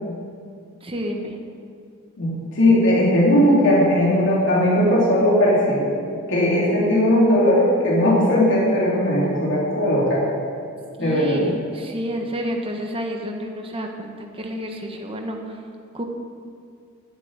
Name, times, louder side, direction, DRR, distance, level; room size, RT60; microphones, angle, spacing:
voice 1, 0.8-1.4 11.0-15.6 15.9-16.0, equal, 25° right, 2 dB, 1.5 m, -30 dB
voice 2, 2.2-10.2 11.0-11.4, left 1 dB, 60° left, -5 dB, 3.1 m, -18 dB
12.5 x 7.9 x 9.0 m, 2.3 s
head